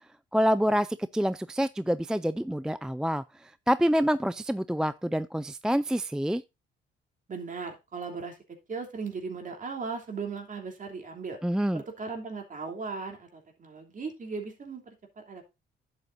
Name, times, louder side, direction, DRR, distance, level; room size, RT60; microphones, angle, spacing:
voice 1, 0.3-6.4 11.4-11.8, equal, 5° right, 0.4 m, -27 dB
voice 2, 7.3-8.4 8.7-11.4 11.7-15.4, right 4 dB, 40° right, 3.1 m, -37 dB
11.0 x 8.1 x 2.6 m
cardioid pair, 90°, 20 cm